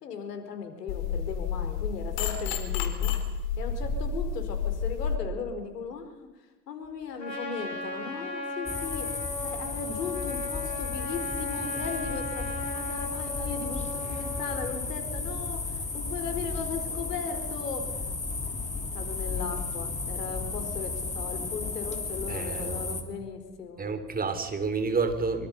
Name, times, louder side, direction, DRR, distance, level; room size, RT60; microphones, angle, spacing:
voice 1, 0.0-3.1 3.6-6.3 6.7-17.9 18.9-23.8, left 5 dB, 70° left, 7 dB, 4.6 m, -37 dB
sound 1, 0.9-5.2, left 6 dB, 55° left, 4.2 m, -30 dB
Trumpet, 7.2-14.8, left 2 dB, 85° left, 4.2 m, -37 dB
sound 2, 8.7-23.0, left 4 dB, 15° left, 3.0 m, -34 dB
voice 2, 22.3-22.9 23.8-25.5, right 4 dB, 20° right, 8 dB, 3.7 m, -29 dB
25.0 x 25.0 x 5.5 m, 1.1 s
figure-of-eight pair, 80°, 49 cm